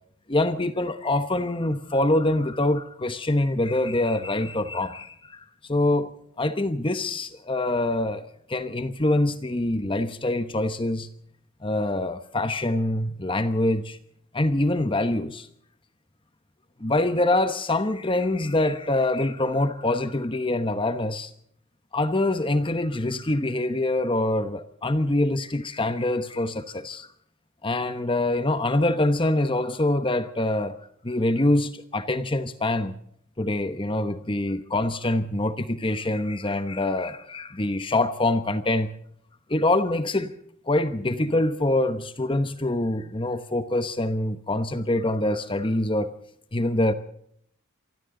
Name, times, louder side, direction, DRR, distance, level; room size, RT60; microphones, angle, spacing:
voice 1, 0.3-5.4 5.7-11.1 11.6-14.0 14.3-15.5 16.8-21.3 21.9-27.1 27.6-30.8 31.0-32.9 33.4-38.9 39.5-40.4 40.7-46.1 46.5-46.9, left 1 dB, 25° left, 1.1 m, -25 dB
27.5 x 24.5 x 3.9 m
head